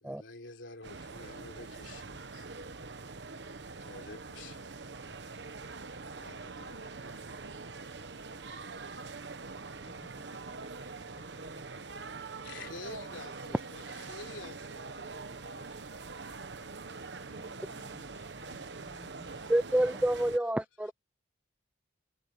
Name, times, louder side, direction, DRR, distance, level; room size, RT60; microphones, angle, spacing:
voice 1, 0.0-2.5 3.8-4.7 6.2-7.0 12.4-15.8, left 3 dB, 90° left, 3.6 m, -49 dB
sound 1, 0.8-20.4, right 4 dB, 70° right, 1.1 m, -44 dB
voice 2, 9.9-11.8 12.4-12.5 17.3-19.7, equal, 30° left, 7.2 m, -58 dB
voice 3, 19.5-20.9, right 1 dB, 5° right, 0.4 m, -28 dB
head